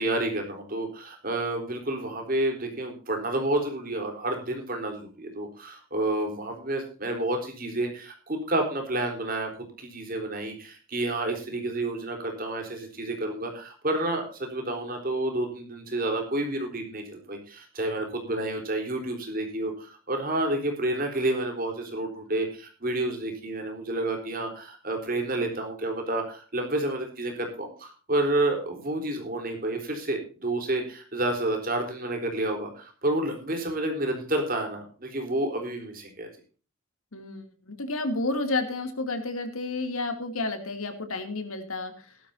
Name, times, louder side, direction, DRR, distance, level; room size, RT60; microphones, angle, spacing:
voice 1, 0.0-9.5 9.8-36.3, right 1 dB, 40° right, 4 dB, 4.1 m, -30 dB
voice 2, 37.1-41.9, left 2 dB, 80° left, 7 dB, 2.8 m, -31 dB
17.0 x 12.5 x 2.8 m, 0.37 s
head